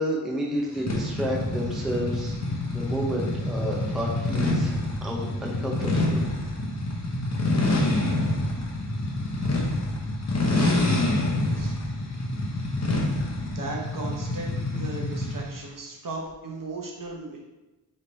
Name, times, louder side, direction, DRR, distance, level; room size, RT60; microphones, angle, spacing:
voice 1, 0.0-2.4 2.7-4.7 5.0-6.3, equal, ahead, -2 dB, 0.6 m, -30 dB
sound 1, 0.9-15.5, left 2 dB, 40° left, 0.8 m, -27 dB
voice 2, 13.4-17.4, right 3 dB, 50° right, -1 dB, 0.8 m, -36 dB
3.3 x 3.2 x 4.0 m, 1.1 s
wide cardioid pair, 100°, 41 cm